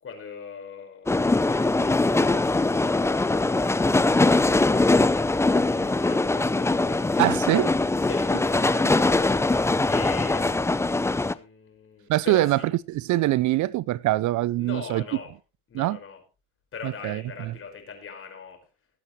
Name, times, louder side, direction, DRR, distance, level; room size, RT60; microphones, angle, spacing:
voice 1, 0.0-5.2 5.5-7.7 8.0-12.7 14.6-15.3 15.7-16.2 16.7-18.7, left 5 dB, 35° left, 5.0 m, -41 dB
sound 1, 1.1-11.3, left 2 dB, 10° left, 0.6 m, -22 dB
voice 2, 7.2-7.7 12.1-12.6 12.9-15.0 15.7-16.0 16.8-17.5, right 16 dB, 55° right, 0.5 m, -23 dB
20.0 x 8.3 x 3.2 m
supercardioid pair, 100°, 36 cm